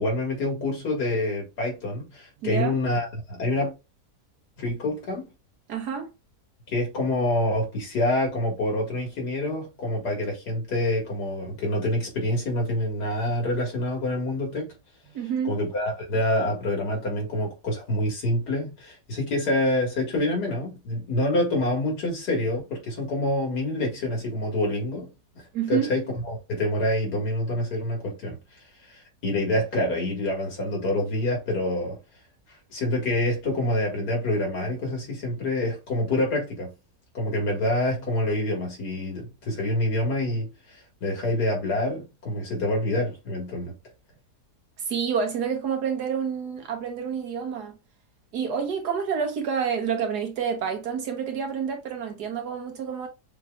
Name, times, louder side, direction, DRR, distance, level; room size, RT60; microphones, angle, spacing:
voice 1, 0.0-3.1 3.4-3.7 4.6-5.2 6.7-14.7 15.4-25.1 25.7-28.4 28.9-32.0 32.7-36.7 37.1-43.7, left 1 dB, 75° left, 2.4 m, -26 dB
voice 2, 2.4-2.7 5.7-6.1 15.1-15.6 25.5-25.9 44.9-47.7 48.3-53.1, right 7 dB, 70° right, 1.6 m, -28 dB
6.4 x 3.0 x 2.4 m
omnidirectional pair, 1.8 m